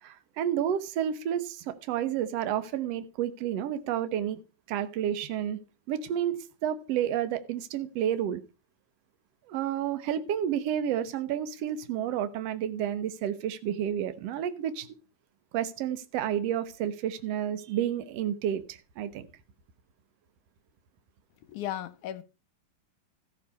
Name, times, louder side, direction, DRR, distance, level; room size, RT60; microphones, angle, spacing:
voice 1, 0.0-4.4 4.7-5.6 5.9-6.4 6.6-8.4 9.5-14.9 15.5-19.3, right 10 dB, 65° right, 1.7 m, -30 dB
voice 2, 21.4-22.2, left 12 dB, 70° left, 2.0 m, -35 dB
14.5 x 6.8 x 5.5 m
omnidirectional pair, 4.1 m